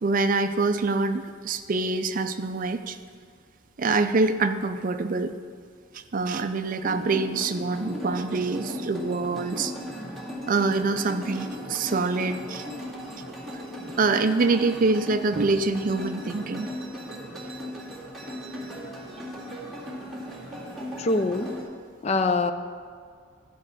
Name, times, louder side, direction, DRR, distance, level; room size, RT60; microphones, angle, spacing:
voice 1, 0.0-3.0 3.8-5.3 5.9-9.7 10.5-12.6 14.0-16.7, right 3 dB, 40° right, 9 dB, 0.4 m, -25 dB
sound 1, 6.8-21.6, equal, ahead, 2.0 m, -37 dB
voice 2, 21.0-21.5 22.0-22.5, left 3 dB, 30° left, 9 dB, 0.4 m, -23 dB
12.0 x 5.4 x 6.4 m, 2.1 s
head